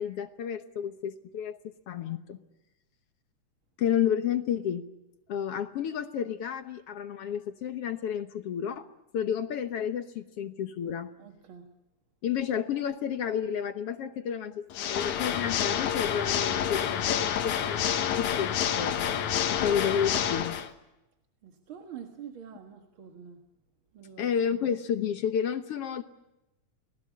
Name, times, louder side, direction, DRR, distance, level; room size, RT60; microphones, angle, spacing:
voice 1, 0.0-1.6 1.9-2.4 3.8-4.8 5.3-8.9 9.1-11.1 12.2-19.2 19.5-20.6 24.2-26.0, left 8 dB, 60° left, 9 dB, 1.8 m, -31 dB
voice 2, 11.2-11.7 21.4-23.4 23.9-24.3, right 8 dB, 50° right, 4 dB, 2.2 m, -46 dB
Water / Mechanisms, 14.7-20.7, left 9 dB, 80° left, 2.7 m, -28 dB
29.5 x 19.5 x 8.5 m, 0.96 s
omnidirectional pair, 3.4 m